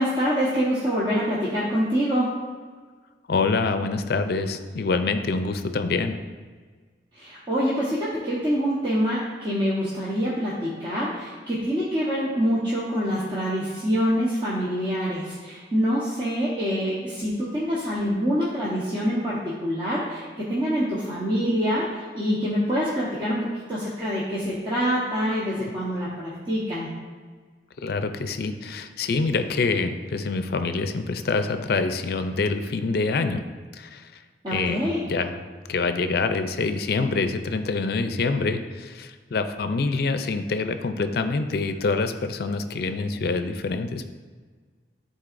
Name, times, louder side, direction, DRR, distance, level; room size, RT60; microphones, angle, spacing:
voice 1, 0.0-2.3 7.2-21.9 22.1-26.9 34.4-35.0, equal, 25° right, -8 dB, 1.0 m, -25 dB
voice 2, 3.3-6.1 27.8-33.4 33.7-34.0 34.5-34.8 35.1-35.4 35.7-44.1, left 4 dB, 60° left, 8 dB, 0.4 m, -26 dB
11.5 x 4.1 x 2.5 m, 1.5 s
head